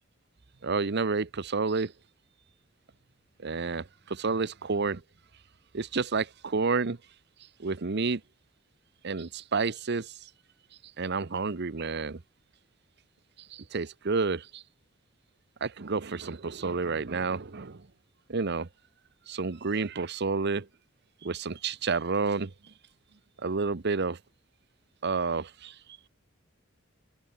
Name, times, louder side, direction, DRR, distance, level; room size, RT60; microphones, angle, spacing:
voice 1, 0.6-1.9 3.4-5.0 5.7-7.0 7.6-8.2 9.0-10.1 11.0-12.2 13.5-14.6 15.6-17.8 18.3-18.7 19.3-20.7 21.2-22.5 23.4-24.2 25.0-25.8, right 4 dB, 55° right, 0.8 m, -30 dB
head